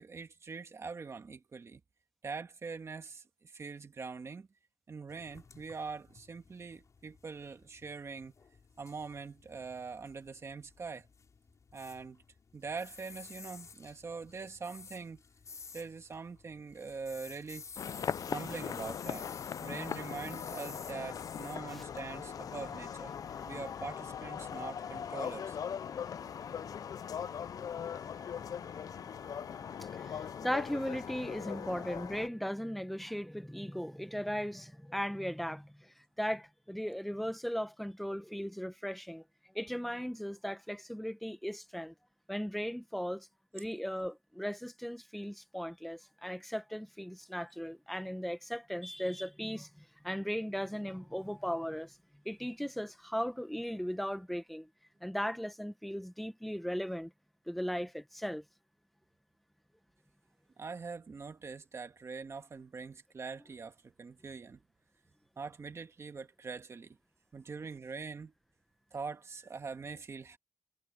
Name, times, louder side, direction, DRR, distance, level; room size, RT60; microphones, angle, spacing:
voice 1, 0.0-1.8 2.2-4.5 4.9-8.3 8.8-11.1 11.7-12.2 12.5-15.2 15.7-17.6 18.3-19.3 19.6-23.1 23.5-25.6 60.6-64.6 65.4-67.0 67.3-68.3 68.9-70.4, right 4 dB, 50° right, 1.7 m, -43 dB
sound 1, 5.1-22.7, left 5 dB, 60° left, 6.7 m, -53 dB
sound 2, 17.8-32.3, left 8 dB, 80° left, 0.4 m, -40 dB
voice 2, 23.2-23.6 24.5-24.6 25.9-39.2 39.5-41.9 42.3-43.3 43.5-52.0 52.2-54.7 55.0-57.1 57.5-58.4, equal, ahead, 1.0 m, -38 dB
wide cardioid pair, 135°, 6 cm